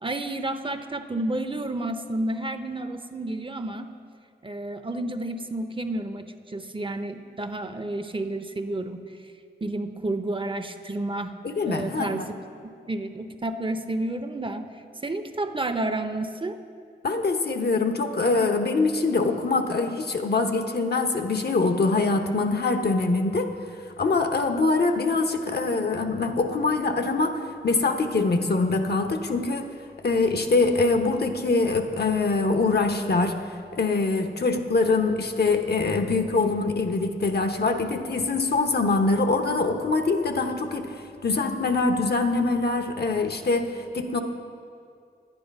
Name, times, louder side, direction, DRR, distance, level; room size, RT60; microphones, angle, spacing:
voice 1, 0.0-3.9 4.4-9.0 9.6-11.3 11.6-12.3 12.6-14.7 15.0-16.6, right 2 dB, 25° right, 8 dB, 0.7 m, -30 dB
voice 2, 11.4-12.3 17.0-23.5 24.0-29.7 30.0-33.3 33.7-40.9 41.2-44.2, left 3 dB, 60° left, 5 dB, 1.0 m, -24 dB
9.9 x 9.7 x 5.4 m, 2.3 s
cardioid pair, 40°, 19 cm